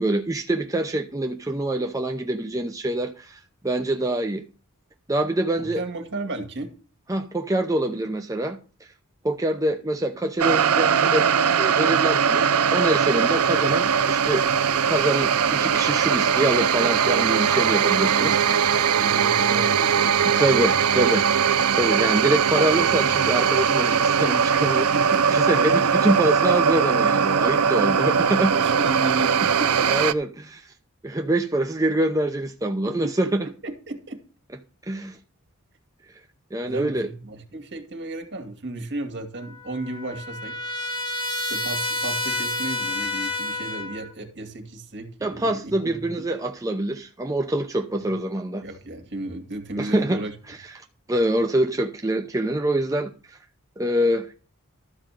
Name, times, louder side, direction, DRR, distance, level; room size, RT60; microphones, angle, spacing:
voice 1, 0.0-4.4 5.1-5.8 7.1-8.6 9.2-11.3 11.6-18.4 20.2-21.3 21.8-24.9 25.3-28.5 29.9-30.3 30.5-30.7 31.0-33.5 34.9-35.2 36.5-37.1 45.2-48.6 49.8-50.2 50.5-53.4 53.8-54.4, right 1 dB, 15° right, 0.7 m, -25 dB
voice 2, 5.6-6.7 18.0-18.4 18.9-20.4 24.9-25.4 27.8-27.9 28.5-29.9 32.9-33.1 33.6-34.2 36.6-40.5 41.4-46.3 48.6-50.3, right 2 dB, 55° right, 2.3 m, -34 dB
sound 1, 10.4-30.1, right 7 dB, 80° right, 0.6 m, -20 dB
Trumpet, 39.4-44.1, left 2 dB, 20° left, 3.1 m, -29 dB
12.5 x 5.1 x 7.6 m
head